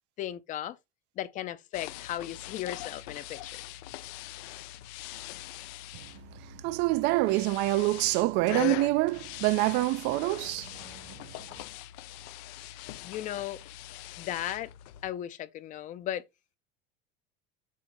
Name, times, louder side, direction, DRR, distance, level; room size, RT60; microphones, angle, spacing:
voice 1, 0.2-0.8 1.2-3.6 13.0-13.6 14.2-14.7 15.0-16.2, left 12 dB, 35° left, 0.7 m, -36 dB
sound 1, 1.7-15.1, left 15 dB, 70° left, 0.7 m, -42 dB
voice 2, 6.4-10.9, right 19 dB, 55° right, 0.5 m, -26 dB
7.5 x 2.8 x 5.3 m
cardioid pair, 155°, 21 cm